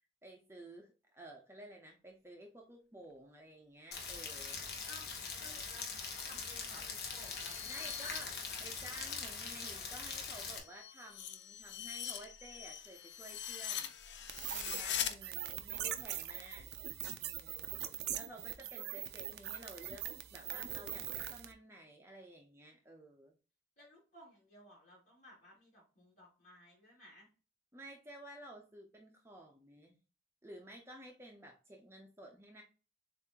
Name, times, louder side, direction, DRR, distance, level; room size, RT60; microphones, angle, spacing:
voice 1, 0.2-4.6 7.7-8.3 8.6-16.7 17.2-17.8 18.1-23.3 27.7-30.0 30.4-32.6, right 1 dB, 15° right, 1 dB, 0.6 m, -53 dB
Rain, 3.9-10.6, left 5 dB, 60° left, 1.1 m, -42 dB
voice 2, 5.4-8.6 17.9-18.2 23.8-27.3, left 1 dB, 40° left, -5 dB, 2.8 m, -57 dB
sound 1, 6.9-9.3 9.6-15.1, left 9 dB, 85° left, 0.6 m, -43 dB
sound 2, 14.3-21.5, right 11 dB, 65° right, 0.5 m, -42 dB
7.1 x 2.6 x 2.8 m, 0.34 s
head